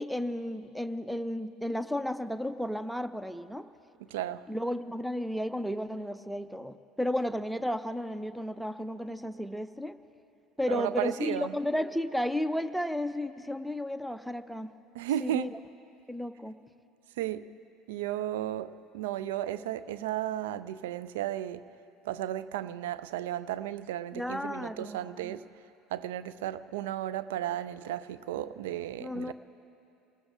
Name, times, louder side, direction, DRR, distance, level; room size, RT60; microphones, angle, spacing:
voice 1, 0.0-3.7 4.5-10.0 10.6-14.7 15.2-15.6 16.1-16.5 24.1-25.3 29.0-29.3, left 1 dB, ahead, 0.5 m, -33 dB
voice 2, 4.1-4.4 10.7-11.6 14.9-15.6 17.2-17.5 17.9-21.6 22.0-25.5 25.9-29.3, right 12 dB, 65° right, 0.4 m, -34 dB
27.0 x 19.5 x 2.5 m
figure-of-eight pair, 65°, 0 cm